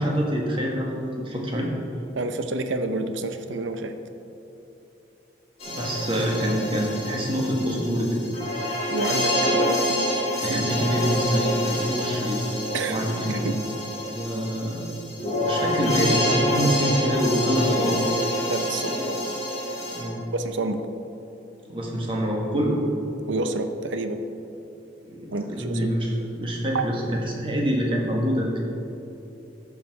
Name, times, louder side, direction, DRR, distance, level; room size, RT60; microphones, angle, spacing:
voice 1, 0.0-1.7 5.7-8.2 10.4-12.5 12.9-13.5 14.1-15.1 15.4-18.1 19.9-20.2 21.7-22.8 25.0-28.6, equal, 25° right, -2 dB, 1.4 m, -26 dB
voice 2, 2.2-3.9 8.9-10.7 12.7-13.6 18.5-19.2 20.3-20.8 23.3-24.2 25.3-25.9 26.7-26.8, right 2 dB, 85° right, 8 dB, 0.7 m, -29 dB
sound 1, 5.6-20.0, equal, 30° left, 2.1 m, -27 dB
13.5 x 4.9 x 4.7 m, 2.9 s
head